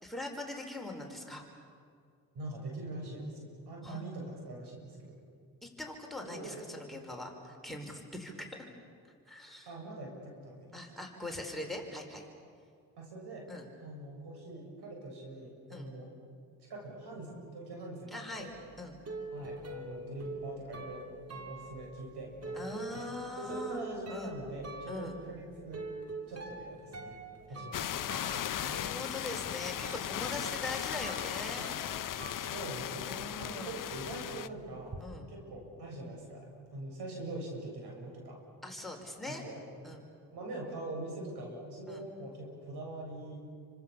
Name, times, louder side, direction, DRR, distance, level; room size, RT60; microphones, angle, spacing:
voice 1, 0.0-1.4 3.8-4.0 5.6-8.7 9.3-9.7 10.7-12.2 13.5-13.7 15.7-15.9 18.1-18.5 18.8-19.0 22.5-23.8 24.1-24.3 24.9-25.1 28.6-32.1 33.1-33.8 35.0-35.3 38.6-39.4 39.8-40.0 41.9-42.0, left 2 dB, ahead, 3 dB, 5.2 m, -42 dB
voice 2, 2.3-5.1 6.2-6.6 9.7-10.8 13.0-13.5 13.8-16.1 16.6-18.5 19.3-25.9 26.3-27.2 27.5-28.0 32.5-35.0 35.3-38.4 39.3-39.6 40.3-43.4, right 2 dB, 60° right, 0 dB, 7.7 m, -43 dB
sound 1, 18.5-33.3 33.6-35.0, right 3 dB, 35° right, 3.9 m, -45 dB
sound 2, 27.7-34.5, left 11 dB, 45° left, 0.9 m, -37 dB
29.0 x 25.5 x 7.1 m, 2.2 s
hypercardioid pair, 50°, 43 cm